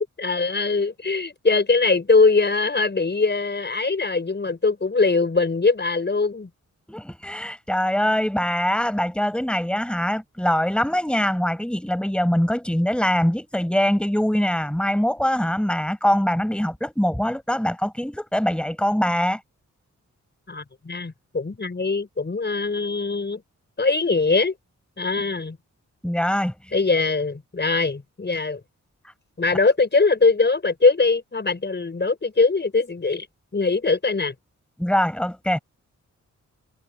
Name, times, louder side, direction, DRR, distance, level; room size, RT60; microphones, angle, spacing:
voice 1, 0.2-6.5 20.5-23.4 23.8-24.5 25.0-25.6 26.7-28.6 29.4-33.3 33.5-34.3, left 4 dB, 35° left, 5.7 m, -21 dB
voice 2, 6.9-19.4 26.0-26.5 34.8-35.6, equal, 5° left, 5.3 m, -23 dB
cardioid pair, 85°, 30 cm